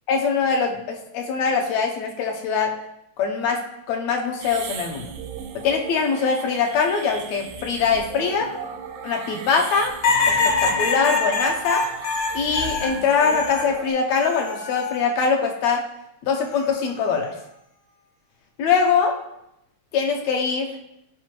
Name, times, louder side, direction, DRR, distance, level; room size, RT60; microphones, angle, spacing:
voice 1, 0.1-2.7 3.2-3.6 3.9-5.1 5.6-8.5 9.0-9.9 10.3-11.8 12.3-15.8 16.2-17.3 18.6-19.1 19.9-20.8, left 5 dB, 75° left, 2 dB, 1.9 m, -22 dB
sound 1, 4.4-13.9, right 6 dB, 80° right, 2.0 m, -36 dB
sound 2, 10.0-13.7 14.2-15.0 16.4-16.8, left 4 dB, 60° left, 1.2 m, -24 dB
9.2 x 4.8 x 3.0 m, 0.81 s
omnidirectional pair, 3.3 m